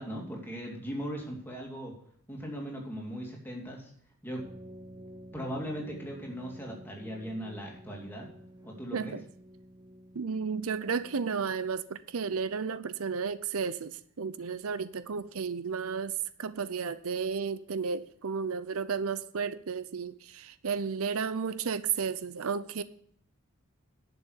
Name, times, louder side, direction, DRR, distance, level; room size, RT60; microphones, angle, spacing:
voice 1, 0.0-1.9 2.3-3.9 4.2-4.4 5.3-8.3 8.6-9.2, equal, 10° left, -1 dB, 2.7 m, -38 dB
sound 1, 4.4-11.9, equal, 20° right, 1.2 m, -51 dB
voice 2, 10.1-22.8, right 5 dB, 75° right, 14 dB, 0.6 m, -33 dB
11.0 x 6.9 x 8.1 m, 0.66 s
head